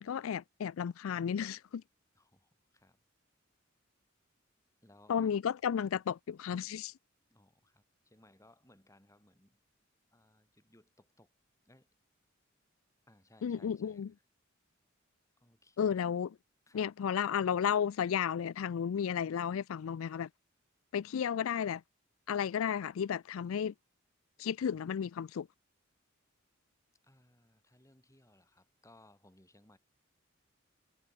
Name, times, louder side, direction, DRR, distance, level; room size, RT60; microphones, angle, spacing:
voice 1, 0.0-1.8 5.1-6.9 13.4-14.1 15.8-16.3 16.7-20.3 20.9-21.8 22.3-23.7 24.4-25.5, left 8 dB, 75° left, 0.4 m, -33 dB
voice 2, 2.1-3.0 4.8-5.4 7.3-9.6 10.1-11.3 11.6-11.9 13.1-14.1 15.4-16.0 16.7-16.9 27.0-29.8, left 1 dB, 15° left, 6.8 m, -63 dB
head